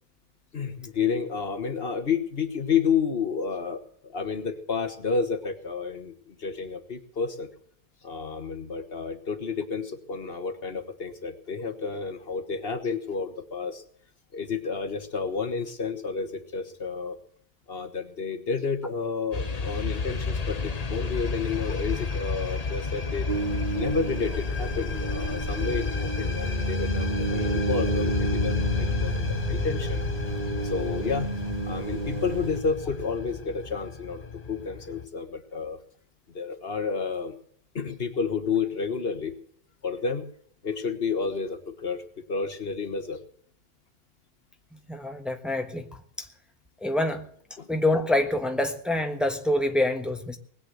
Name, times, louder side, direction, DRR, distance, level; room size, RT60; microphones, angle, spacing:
voice 1, 0.5-7.5 8.0-13.8 14.3-17.2 17.7-23.3 23.7-30.0 30.6-31.3 31.6-35.8 36.3-37.4 37.7-39.3 39.8-40.2 40.6-43.2 47.6-47.7, left 5 dB, 70° left, 8 dB, 1.7 m, -30 dB
sound 1, 19.3-35.1, left 4 dB, 40° left, 1.2 m, -31 dB
sound 2, 23.3-32.6, right 2 dB, 45° right, 1.3 m, -31 dB
voice 2, 44.7-45.9 46.2-46.3 46.8-47.3 47.7-50.4, left 1 dB, ahead, 5 dB, 1.4 m, -26 dB
20.0 x 8.4 x 7.9 m, 0.63 s
omnidirectional pair, 1.0 m